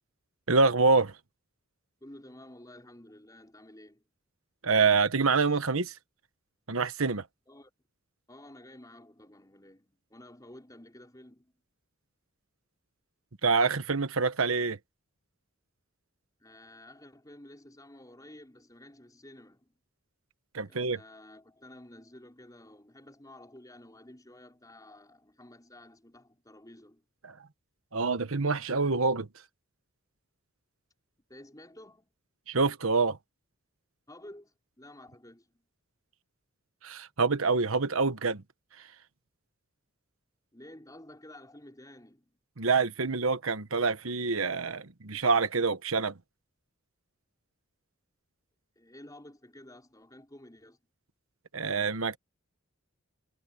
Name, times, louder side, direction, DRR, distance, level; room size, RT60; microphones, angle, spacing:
voice 1, 0.5-1.2 4.6-5.9 6.7-7.3 13.4-14.8 20.5-21.0 27.2-27.4 27.9-29.3 32.5-33.2 36.8-38.4 38.8-38.9 42.6-46.1 51.5-52.2, right 4 dB, 75° right, 1.3 m, -26 dB
voice 2, 2.0-4.0 7.5-7.7 8.3-11.5 16.4-19.7 20.7-27.0 31.3-32.1 34.1-35.6 40.5-42.3 48.8-50.8, left 1 dB, 15° left, 5.6 m, -52 dB
head